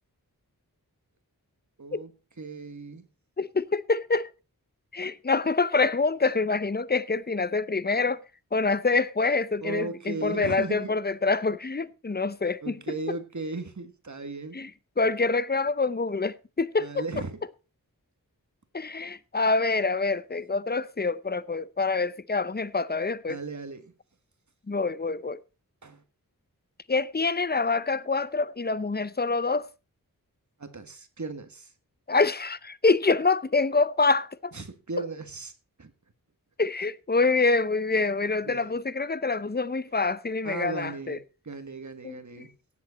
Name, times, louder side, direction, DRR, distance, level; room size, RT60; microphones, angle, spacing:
voice 1, 1.8-2.1 2.4-3.0 9.6-10.9 12.6-14.6 16.8-17.4 23.3-23.9 25.8-26.0 30.6-31.7 34.5-35.5 35.8-35.9 38.4-38.8 40.4-42.5, right 3 dB, 50° right, 1.7 m, -36 dB
voice 2, 3.4-4.3 4.9-8.2 8.5-13.0 14.5-14.7 15.0-17.0 18.7-23.4 24.7-25.4 26.9-29.7 32.1-34.5 36.6-41.2 42.0-42.5, left 3 dB, 25° left, 0.7 m, -26 dB
17.5 x 7.4 x 4.1 m
wide cardioid pair, 55°, 36 cm